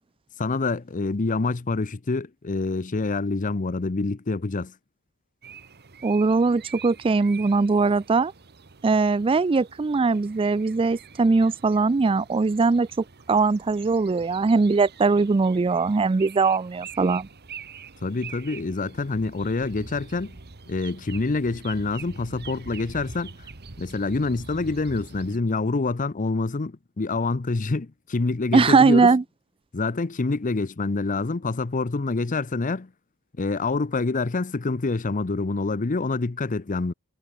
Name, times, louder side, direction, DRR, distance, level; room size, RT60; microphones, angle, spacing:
voice 1, 0.4-4.7 18.0-20.4 20.7-23.5 23.8-29.1 29.7-32.9 33.4-36.9, left 3 dB, 35° left, 0.6 m, -26 dB
sound 1, 5.4-25.4, right 4 dB, 50° right, 1.5 m, -44 dB
voice 2, 6.0-8.3 8.8-17.3 28.5-29.2, right 4 dB, 25° right, 0.4 m, -21 dB
head